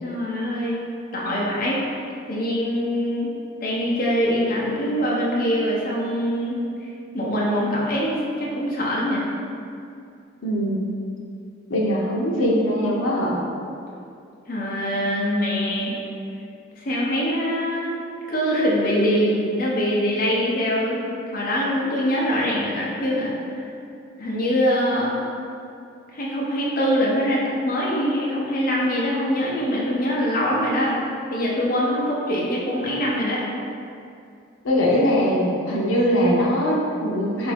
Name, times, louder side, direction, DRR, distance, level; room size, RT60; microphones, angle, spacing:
voice 1, 0.0-0.8 1.1-2.0 2.3-3.3 3.6-6.5 7.1-9.2 14.5-16.0 16.8-18.0 18.3-23.3 24.2-25.2 26.1-31.0 31.3-33.4, equal, 45° left, -5 dB, 0.6 m, -23 dB
voice 2, 10.4-10.9 11.7-13.4 34.6-37.5, equal, 85° left, -3 dB, 0.6 m, -21 dB
3.5 x 2.6 x 3.4 m, 2.5 s
head